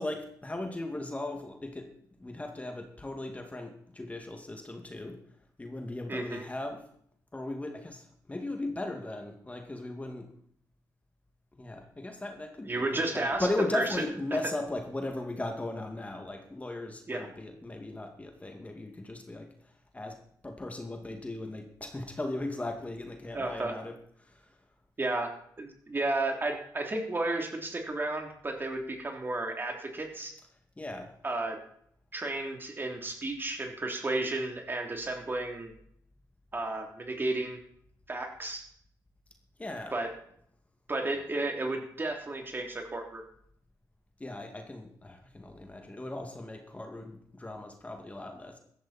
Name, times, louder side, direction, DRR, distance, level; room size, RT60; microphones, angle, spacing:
voice 1, 0.0-1.9 2.2-5.2 5.6-6.8 7.3-10.3 11.6-12.9 13.1-19.5 19.9-20.2 20.4-23.9 24.3-24.5 30.8-31.1 39.6-39.9 44.2-48.6, left 2 dB, 20° left, 3 dB, 2.3 m, -37 dB
voice 2, 6.1-6.4 12.6-13.5 13.7-13.9 17.1-17.3 23.3-23.7 25.0-25.3 25.6-30.3 31.2-31.6 32.1-35.7 36.5-37.6 38.1-38.6 39.9-40.1 40.9-43.2, right 2 dB, 30° right, 2 dB, 3.4 m, -33 dB
15.5 x 12.5 x 4.4 m, 0.65 s
cardioid pair, 70°, 7 cm